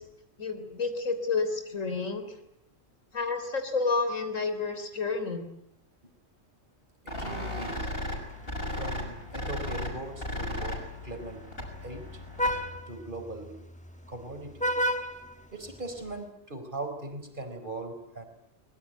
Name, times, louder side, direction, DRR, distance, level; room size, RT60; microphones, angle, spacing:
voice 1, 0.4-2.2 3.1-5.5, left 4 dB, 90° left, 7 dB, 3.9 m, -30 dB
voice 2, 7.0-7.9 8.8-11.4 11.8-12.1 12.9-13.6 14.1-14.7 15.5-18.2, right 2 dB, 40° right, 6 dB, 4.7 m, -40 dB
sound 1, 7.1-12.8, left 1 dB, 45° left, 6.6 m, -36 dB
Vehicle horn car horn honking, 8.2-16.2, equal, 5° left, 1.3 m, -36 dB
24.0 x 21.5 x 9.2 m, 0.80 s
omnidirectional pair, 1.3 m